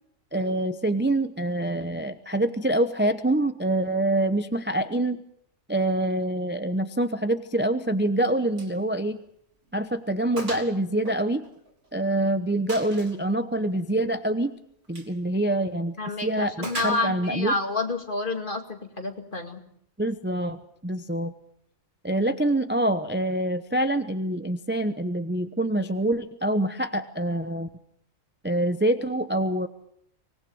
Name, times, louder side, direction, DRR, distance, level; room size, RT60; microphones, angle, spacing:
voice 1, 0.3-5.2 5.7-9.2 9.7-11.4 11.9-14.5 14.9-16.0 16.2-17.5 20.0-21.3 22.0-27.7 28.4-29.7, right 1 dB, 10° right, 10 dB, 0.8 m, -25 dB
Gunshot gunfire, 8.6-8.8 9.1-9.2 9.7-9.8 10.4-10.7 11.1-12.0 12.7-13.2 14.8-15.2 16.6-17.4, right 2 dB, 65° right, 3.2 m, -38 dB
voice 2, 16.0-19.6, left 2 dB, 40° left, 6 dB, 2.5 m, -29 dB
25.0 x 19.5 x 7.7 m, 0.69 s
omnidirectional pair, 1.3 m